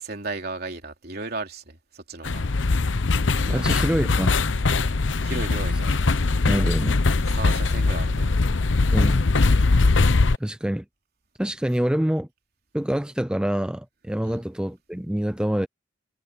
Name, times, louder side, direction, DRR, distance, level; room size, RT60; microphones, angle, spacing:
voice 1, 0.0-2.4 3.4-3.6 5.2-6.0 7.3-8.3 14.2-14.4, right 3 dB, 55° right, 3.4 m, -35 dB
sound 1, 2.2-10.4, left 3 dB, 90° left, 0.8 m, -21 dB
voice 2, 3.5-4.3 6.5-7.0 8.9-9.2 10.4-10.8 11.4-12.3 12.7-15.7, equal, 5° right, 0.5 m, -26 dB
head